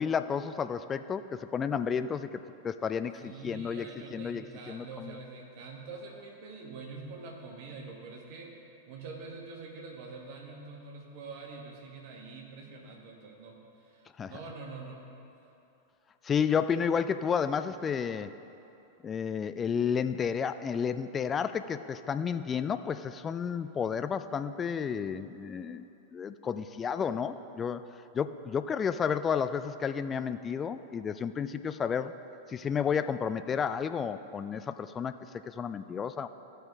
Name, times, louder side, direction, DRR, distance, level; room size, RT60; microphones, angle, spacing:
voice 1, 0.0-5.2 14.2-14.3 16.2-18.3 19.0-25.8 26.1-27.8 28.1-32.1 32.5-35.1 35.5-36.3, left 7 dB, 20° left, 11 dB, 0.3 m, -31 dB
voice 2, 3.2-8.5 8.9-15.0, right 3 dB, 50° right, 0 dB, 1.4 m, -45 dB
14.5 x 5.6 x 3.7 m, 2.9 s
figure-of-eight pair, 90°, 0 cm